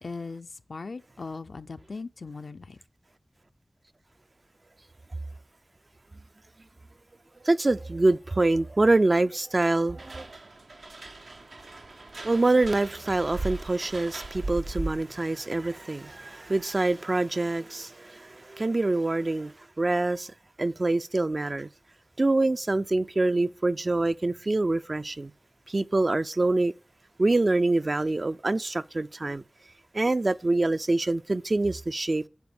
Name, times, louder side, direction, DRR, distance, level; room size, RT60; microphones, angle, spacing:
voice 1, 0.0-2.8, left 4 dB, 85° left, 0.4 m, -39 dB
voice 2, 7.4-10.3 12.2-21.7 22.2-25.3 25.7-26.7 27.2-29.4 29.9-32.2, right 2 dB, 55° right, 0.4 m, -25 dB
sound 1, 10.0-15.2, right 2 dB, 85° right, 0.7 m, -38 dB
8.1 x 4.3 x 7.0 m
wide cardioid pair, 40°, 0 cm